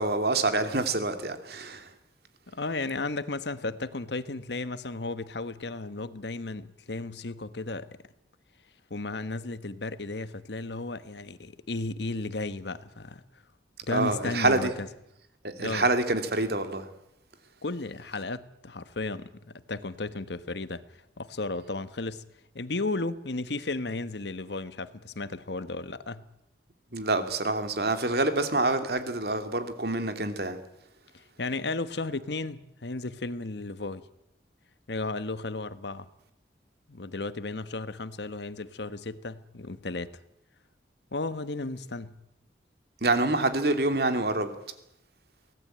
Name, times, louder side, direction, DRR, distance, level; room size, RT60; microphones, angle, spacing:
voice 1, 0.0-1.9 13.9-14.7 15.4-16.9 26.9-30.6 43.0-44.5, right 2 dB, 60° right, 2.7 m, -26 dB
voice 2, 2.5-7.9 8.9-13.2 13.9-14.9 15.6-15.9 17.6-20.8 21.2-22.2 22.5-26.2 31.1-34.0 34.9-36.1 36.9-40.1 41.1-42.2, left 3 dB, 75° left, 1.2 m, -34 dB
24.0 x 18.5 x 8.8 m
head